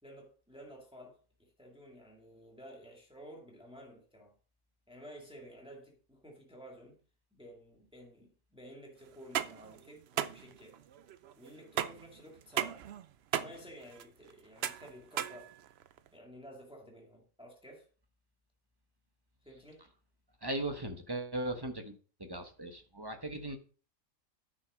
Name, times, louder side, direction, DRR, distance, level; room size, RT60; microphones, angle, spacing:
voice 1, 0.0-4.4 4.9-7.0 7.3-10.8 11.4-12.9 13.4-15.6 16.1-17.9 19.4-19.8, equal, 5° right, 2.1 m, -53 dB
sound 1, 9.1-16.1, right 10 dB, 60° right, 0.7 m, -37 dB
voice 2, 20.4-21.9 22.3-23.6, right 1 dB, 20° right, 0.9 m, -38 dB
9.6 x 5.9 x 5.0 m
omnidirectional pair, 1.4 m